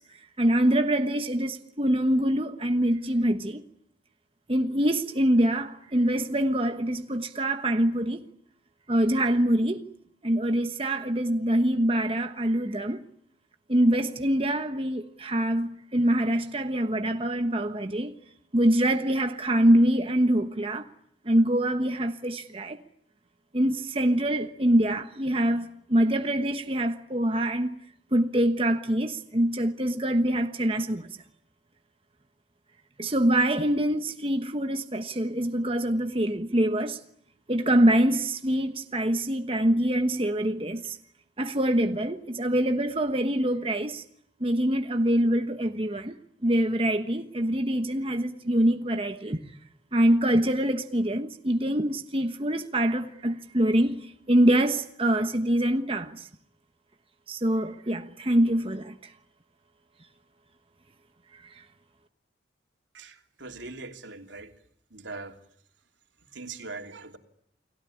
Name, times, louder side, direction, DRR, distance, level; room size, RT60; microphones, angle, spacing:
voice 1, 0.0-3.6 4.5-8.2 8.9-9.9 10.2-13.0 13.7-18.1 18.5-20.9 21.2-22.8 23.5-27.8 28.1-31.2 33.0-37.0 37.5-41.0 41.4-44.0 44.4-46.2 46.4-49.4 49.9-56.3 57.3-59.1 61.3-61.6, right 1 dB, 30° right, 1.2 m, -25 dB
voice 2, 62.9-64.5 64.9-65.3 66.3-67.2, right 3 dB, 85° right, 3.1 m, -41 dB
30.0 x 20.0 x 10.0 m
head